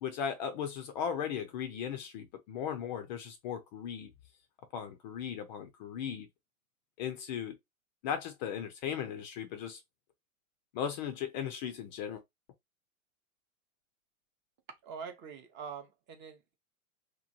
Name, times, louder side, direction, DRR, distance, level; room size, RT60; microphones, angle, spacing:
voice 1, 0.0-4.1 4.7-6.3 7.0-7.6 8.0-9.8 10.7-12.2, left 8 dB, 35° left, 0.4 m, -37 dB
voice 2, 14.8-16.6, right 6 dB, 25° right, 0.5 m, -44 dB
2.9 x 2.2 x 2.5 m
hypercardioid pair, 110°, 42 cm